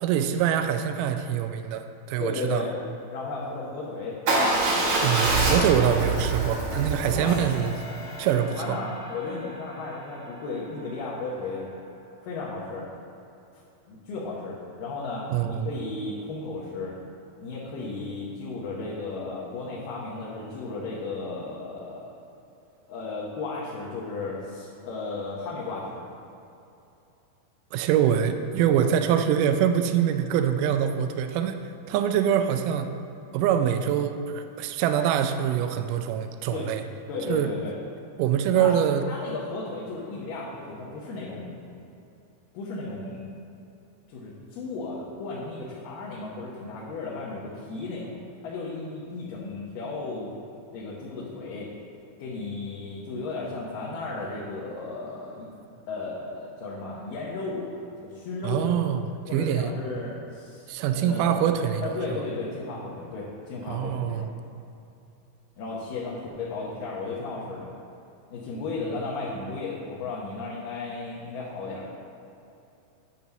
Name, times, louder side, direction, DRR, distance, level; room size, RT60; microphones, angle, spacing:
voice 1, 0.0-2.7 5.0-7.8 8.2-8.8 15.3-15.7 27.7-31.6 31.9-32.9 33.3-36.8 37.3-37.5 38.2-39.0 58.4-59.0 59.3-59.7 60.7-61.9 63.7-64.3, right 9 dB, 85° right, 8 dB, 1.8 m, -24 dB
voice 2, 2.2-2.8 3.1-4.2 7.1-7.4 8.3-11.6 12.2-12.9 13.9-17.0 17.4-22.2 22.9-26.0 36.5-36.7 37.1-37.7 38.6-38.8 39.1-41.7 42.5-43.3 44.1-48.2 48.4-50.3 50.7-51.7 52.2-55.5 55.9-57.7 58.0-58.7 59.3-61.3 61.8-64.3 65.6-67.7 68.3-71.8, left 3 dB, 70° left, -6 dB, 2.6 m, -34 dB
Motorcycle / Engine starting / Idling, 4.3-8.4, right 3 dB, 65° right, 1.4 m, -25 dB
sound 1, 7.2-12.5, equal, 50° left, 2.2 m, -43 dB
8.9 x 4.1 x 6.9 m, 2.8 s
omnidirectional pair, 4.3 m